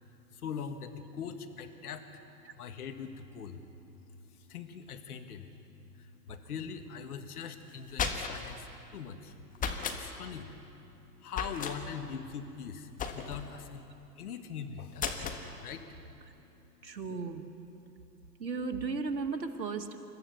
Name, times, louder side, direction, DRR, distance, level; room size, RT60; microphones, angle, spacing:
voice 1, 0.3-2.2 2.6-3.6 4.3-5.5 5.9-9.4 9.9-10.6 11.2-13.9 14.2-15.2 15.6-16.1, left 7 dB, 60° left, 7 dB, 1.9 m, -42 dB
book dropped onto carpet, 7.7-8.5 9.5-10.0 11.3-11.8 13.0-13.5 15.0-15.4, left 6 dB, 15° left, 1.5 m, -34 dB
voice 2, 16.8-17.5 18.4-20.0, right 4 dB, 85° right, 6 dB, 2.0 m, -35 dB
29.0 x 14.0 x 7.1 m, 2.9 s
figure-of-eight pair, 115°, 50 cm